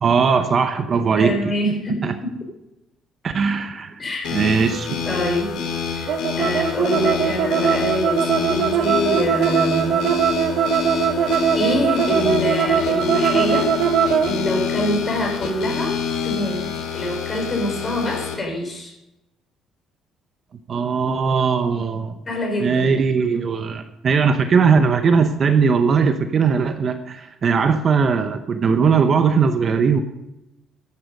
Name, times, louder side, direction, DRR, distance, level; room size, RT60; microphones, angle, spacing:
voice 1, 0.0-1.4 2.0-2.1 3.2-4.0 4.3-4.9 20.7-22.2 22.6-30.0, right 5 dB, 40° right, 8 dB, 0.9 m, -19 dB
voice 2, 1.2-2.4 4.0-4.3 5.0-5.6 6.0-10.2 11.2-13.7 14.3-16.6 16.9-18.9 22.3-23.0, left 1 dB, 25° left, 1 dB, 4.7 m, -25 dB
sound 1, 4.2-18.4, left 6 dB, 75° left, 2.7 m, -27 dB
sound 2, 6.1-14.3, right 7 dB, 65° right, 1.3 m, -20 dB
13.0 x 10.5 x 5.4 m, 0.94 s
cardioid pair, 130°, 0 cm